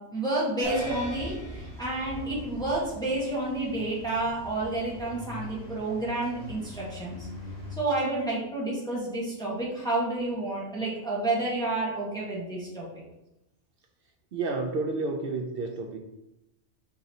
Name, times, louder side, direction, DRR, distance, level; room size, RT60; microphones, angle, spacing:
voice 1, 0.0-7.3 7.8-12.9, right 2 dB, 5° left, -6 dB, 1.1 m, -30 dB
sound 1, 0.6-3.1, right 2 dB, 15° right, 0.7 m, -41 dB
sound 2, 0.7-7.8, left 1 dB, 55° left, 2.2 m, -43 dB
voice 2, 14.3-16.0, right 3 dB, 60° right, 3 dB, 0.6 m, -30 dB
4.8 x 3.9 x 2.8 m, 0.89 s
omnidirectional pair, 1.3 m